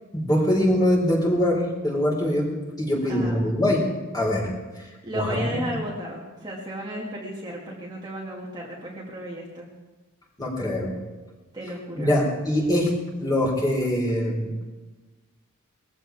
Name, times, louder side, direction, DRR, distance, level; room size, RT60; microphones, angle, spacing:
voice 1, 0.1-2.5 2.8-3.9 4.1-4.5 4.8-5.5 10.4-11.0 12.0-12.9 13.2-14.5, left 1 dB, 20° left, -3 dB, 4.5 m, -23 dB
voice 2, 3.1-3.5 5.0-9.7 11.5-12.1, equal, 20° right, -3 dB, 2.2 m, -34 dB
21.5 x 15.0 x 3.5 m, 1.2 s
head